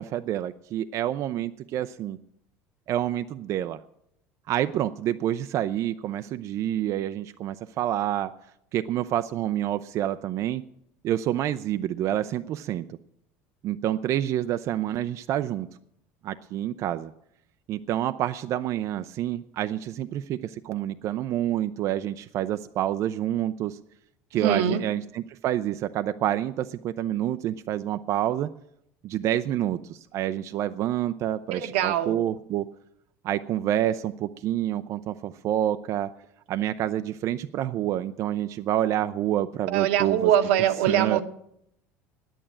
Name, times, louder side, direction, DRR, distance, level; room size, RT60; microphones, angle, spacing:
voice 1, 0.0-2.2 2.9-3.8 4.5-8.3 8.7-10.6 11.0-13.0 13.6-15.7 16.2-17.1 17.7-23.8 24.3-28.5 29.0-32.7 33.2-36.1 36.5-40.3 40.9-41.2, right 12 dB, 55° right, 10 dB, 0.4 m, -28 dB
voice 2, 24.4-24.8 31.5-32.2 39.7-41.2, right 10 dB, 85° right, 8 dB, 1.0 m, -23 dB
9.9 x 8.8 x 8.9 m, 0.78 s
supercardioid pair, 100°, 6 cm